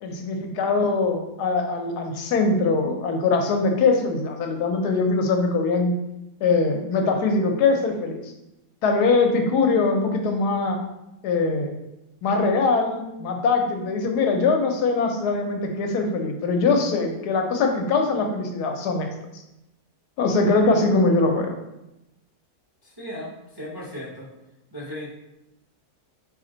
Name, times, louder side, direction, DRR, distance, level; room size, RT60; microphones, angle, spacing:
voice 1, 0.0-5.9 6.4-8.2 8.8-10.8 11.2-11.7 12.2-19.1 20.2-21.5, left 3 dB, 80° left, 3 dB, 1.2 m, -22 dB
voice 2, 22.8-24.3 24.7-25.1, equal, 20° right, -6 dB, 0.7 m, -36 dB
4.2 x 3.1 x 3.8 m, 0.92 s
omnidirectional pair, 1.7 m